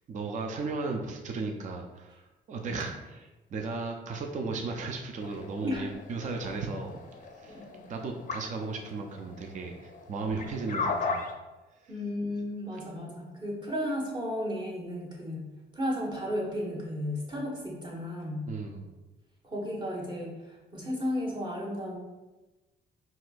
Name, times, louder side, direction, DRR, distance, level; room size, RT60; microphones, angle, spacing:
voice 1, 0.1-2.2 2.5-7.0 7.4-7.6 7.9-11.2 11.8-11.9 18.5-18.9, right 3 dB, 40° right, 2 dB, 0.4 m, -35 dB
sound 1, 5.2-11.3, left 4 dB, 40° left, 0.5 m, -37 dB
voice 2, 7.5-7.8 11.9-15.5 15.7-18.5 19.4-22.0, left 1 dB, 20° right, -4 dB, 1.1 m, -34 dB
4.1 x 2.4 x 2.5 m, 1.1 s
cardioid pair, 90°, 20 cm